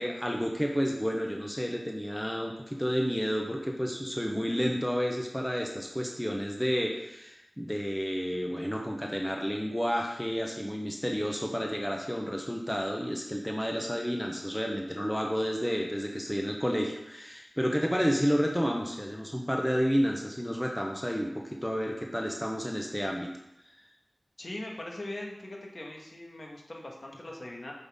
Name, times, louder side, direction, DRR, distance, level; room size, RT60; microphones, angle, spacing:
voice 1, 0.0-23.3, equal, 5° left, 0 dB, 0.8 m, -30 dB
voice 2, 24.4-27.7, left 1 dB, 50° left, -1 dB, 1.5 m, -41 dB
7.8 x 5.5 x 3.6 m, 0.89 s
wide cardioid pair, 65°, 0 cm